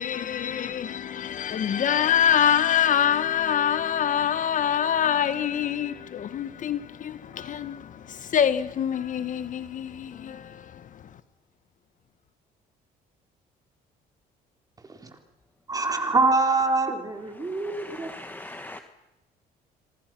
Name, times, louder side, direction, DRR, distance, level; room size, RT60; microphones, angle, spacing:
voice 1, 0.0-11.0, left 9 dB, 50° left, 1.4 m, -25 dB
voice 2, 15.7-18.1, right 3 dB, 20° right, 3.8 m, -24 dB
voice 3, 17.3-18.8, left 1 dB, 10° left, 1.5 m, -42 dB
26.0 x 25.5 x 6.1 m
cardioid pair, 110°, 17 cm